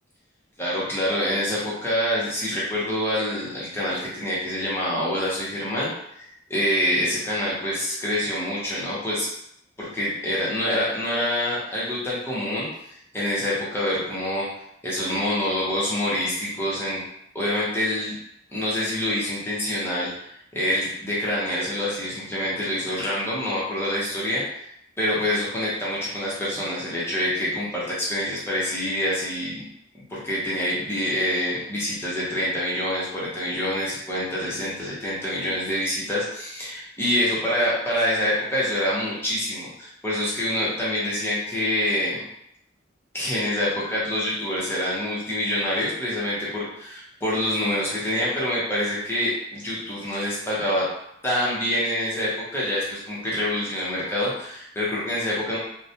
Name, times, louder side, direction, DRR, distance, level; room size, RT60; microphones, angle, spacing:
voice 1, 0.6-5.9 6.2-9.3 9.8-14.5 14.8-17.0 17.3-18.2 18.5-20.3 20.5-24.4 25.0-29.7 30.1-42.2 43.1-50.9 51.2-55.6, left 1 dB, 10° left, -7 dB, 0.7 m, -26 dB
2.4 x 2.1 x 2.7 m, 0.75 s
head